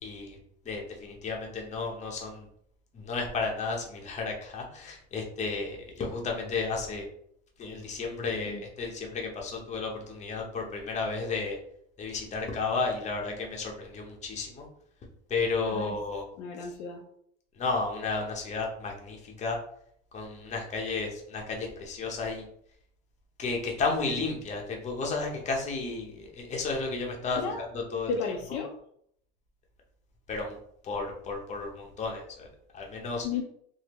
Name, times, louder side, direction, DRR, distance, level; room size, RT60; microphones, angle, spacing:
voice 1, 0.0-0.4 0.7-2.5 2.9-7.1 7.6-11.6 12.0-14.7 15.3-16.2 17.6-19.6 20.1-22.4 23.4-28.1 30.3-30.6 30.8-32.5 32.7-33.3, left 4 dB, 20° left, 0 dB, 0.7 m, -33 dB
voice 2, 16.4-17.0 27.4-27.6 28.1-28.7 33.2-33.4, left 5 dB, 55° left, 2 dB, 0.5 m, -33 dB
3.5 x 2.0 x 3.0 m, 0.68 s
supercardioid pair, 115°, 31 cm